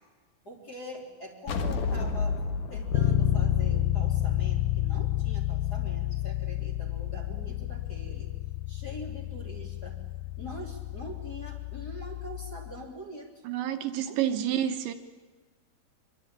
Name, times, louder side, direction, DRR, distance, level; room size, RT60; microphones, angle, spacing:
voice 1, 0.4-2.4 2.7-8.3 8.7-10.0 10.4-13.4 14.0-14.6, equal, 25° left, 0 dB, 3.2 m, -43 dB
sound 1, 1.5-4.9, left 4 dB, 55° left, 2.5 m, -32 dB
Bass guitar, 2.9-12.7, left 13 dB, 75° left, 2.4 m, -30 dB
voice 2, 13.4-14.9, right 11 dB, 75° right, 7 dB, 3.2 m, -29 dB
25.0 x 23.5 x 9.0 m, 1.3 s
omnidirectional pair, 5.6 m